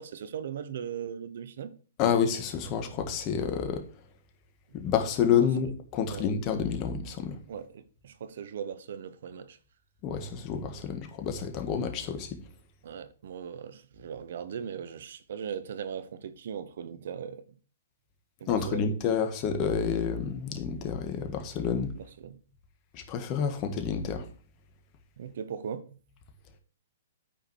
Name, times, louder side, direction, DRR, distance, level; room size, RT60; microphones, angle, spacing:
voice 1, 0.0-1.7 5.4-5.5 6.1-6.3 6.5-6.6 7.5-9.6 12.8-17.4 18.4-18.9 21.9-22.4 25.2-26.0, right 8 dB, 65° right, 0.9 m, -39 dB
voice 2, 2.0-3.8 4.7-7.4 10.0-12.4 18.5-21.9 22.9-24.2, left 7 dB, 35° left, 1.5 m, -29 dB
8.9 x 5.0 x 4.6 m
hypercardioid pair, 125°, 0 cm